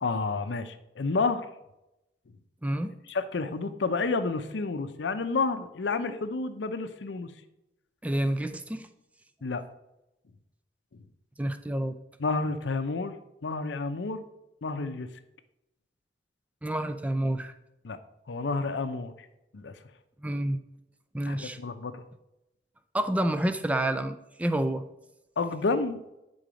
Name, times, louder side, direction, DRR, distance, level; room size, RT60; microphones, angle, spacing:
voice 1, 0.0-1.5 3.1-7.3 9.4-9.6 12.2-13.2 13.4-14.2 14.6-15.1 17.8-18.0 18.3-19.1 19.5-19.7 21.2-22.0 25.4-26.0, left 3 dB, 75° left, 10 dB, 0.6 m, -30 dB
voice 2, 2.6-2.9 8.0-8.9 11.4-12.0 16.6-17.5 20.2-20.6 21.1-21.6 22.9-24.9, right 1 dB, 10° right, 9 dB, 0.4 m, -28 dB
9.0 x 3.9 x 5.0 m, 0.90 s
head